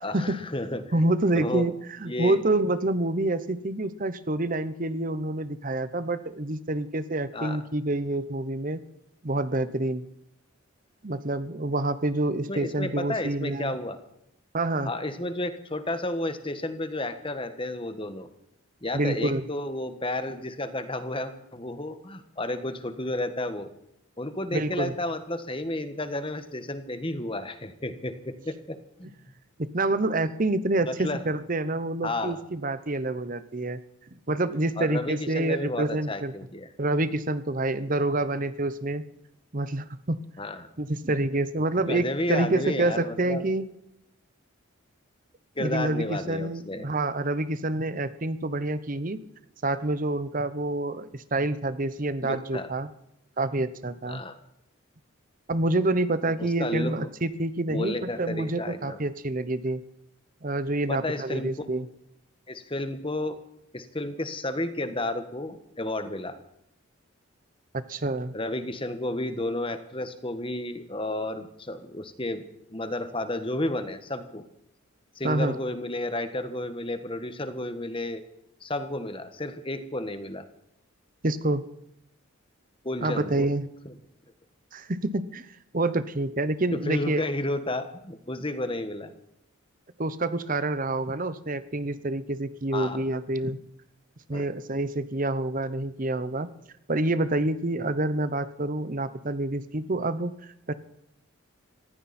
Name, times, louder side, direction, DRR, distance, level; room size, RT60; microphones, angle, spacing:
voice 1, 0.0-0.8 1.3-1.7 2.1-2.4 7.3-7.6 12.5-14.0 14.8-18.3 18.8-23.7 24.2-29.1 30.9-31.2 32.0-32.4 34.8-36.7 40.4-40.7 41.9-43.4 45.5-46.9 52.2-52.7 54.0-54.3 56.4-56.9 57.7-59.0 60.9-61.5 62.5-63.4 63.7-66.3 68.3-72.4 72.7-74.4 75.1-78.2 78.6-80.5 82.8-83.5 83.8-83.9 86.7-89.2 92.7-93.0 94.3-94.5, left 1 dB, 25° left, 9 dB, 1.5 m, -32 dB
voice 2, 0.9-8.8 9.2-10.0 11.0-13.7 14.5-14.9 18.9-19.4 24.5-24.9 29.7-33.8 34.3-36.3 36.8-39.0 39.5-40.2 40.8-43.7 45.6-49.2 49.6-52.9 53.4-54.2 55.5-59.8 60.4-61.9 67.7-68.3 75.2-75.6 81.2-81.6 83.0-83.7 84.7-87.2 90.0-93.6 94.3-96.5 96.9-100.7, right 2 dB, 40° right, 13 dB, 0.9 m, -27 dB
19.0 x 16.0 x 4.4 m, 0.79 s
head